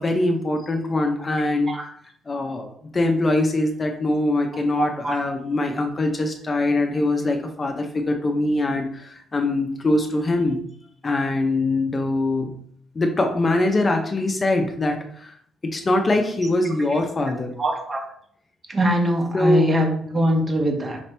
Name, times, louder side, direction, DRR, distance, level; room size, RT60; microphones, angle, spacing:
voice 1, 0.0-1.7 2.3-10.6 11.0-12.5 12.9-15.4 15.6-17.5 19.3-19.7, left 2 dB, 30° left, 4 dB, 0.6 m, -23 dB
voice 2, 4.8-5.2 17.6-18.0 18.7-21.0, equal, 30° right, 2 dB, 1.2 m, -22 dB
5.0 x 2.8 x 3.3 m, 0.64 s
cardioid pair, 90°, 0 cm